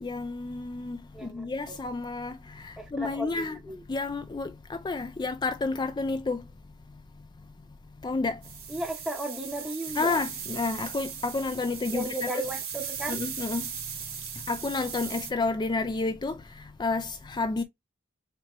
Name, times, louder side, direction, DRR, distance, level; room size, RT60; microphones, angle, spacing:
voice 1, 0.0-2.4 2.9-3.6 3.9-4.5 4.8-6.4 8.0-8.4 10.0-12.4 13.1-13.6 14.5-16.4 16.8-17.6, left 3 dB, 20° left, 0.4 m, -30 dB
voice 2, 1.1-1.8 2.8-3.8 8.7-10.2 11.9-13.2, right 1 dB, ahead, 0.8 m, -35 dB
sound 1, 8.4-15.3, right 8 dB, 90° right, 2.7 m, -38 dB
4.2 x 2.8 x 4.4 m
head